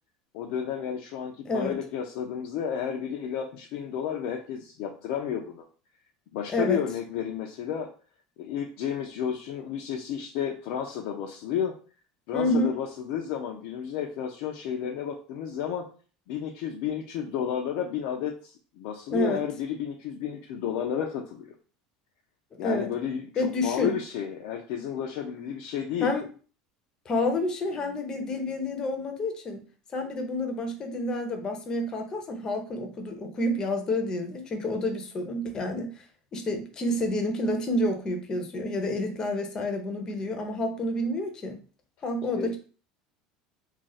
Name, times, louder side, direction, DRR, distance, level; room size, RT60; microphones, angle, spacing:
voice 1, 0.3-5.6 6.3-7.9 8.4-11.7 12.3-15.9 16.3-21.5 22.6-26.1 42.3-42.6, left 8 dB, 65° left, 0 dB, 0.5 m, -32 dB
voice 2, 6.5-6.8 12.3-12.7 19.1-19.4 22.6-22.9 23.4-23.9 26.0-26.3 27.1-29.6 29.9-35.9 36.3-41.6 42.0-42.6, left 1 dB, 25° left, 4 dB, 0.6 m, -29 dB
2.4 x 2.3 x 4.0 m, 0.38 s
supercardioid pair, 140°, 3 cm